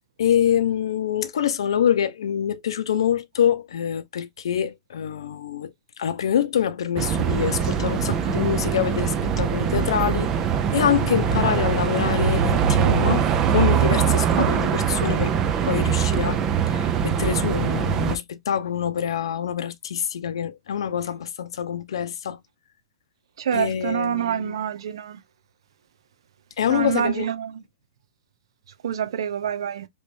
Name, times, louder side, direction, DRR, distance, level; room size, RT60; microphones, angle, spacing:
voice 1, 0.2-5.7 6.0-10.3 10.7-15.4 15.6-22.4 23.5-24.6 26.6-27.3, left 9 dB, 90° left, 0.6 m, -25 dB
sound 1, 7.0-18.2, right 8 dB, 20° right, 0.4 m, -22 dB
voice 2, 23.4-25.2 26.7-27.6 28.8-29.9, right 9 dB, 75° right, 0.6 m, -26 dB
3.3 x 3.1 x 2.6 m
supercardioid pair, 175°, 3 cm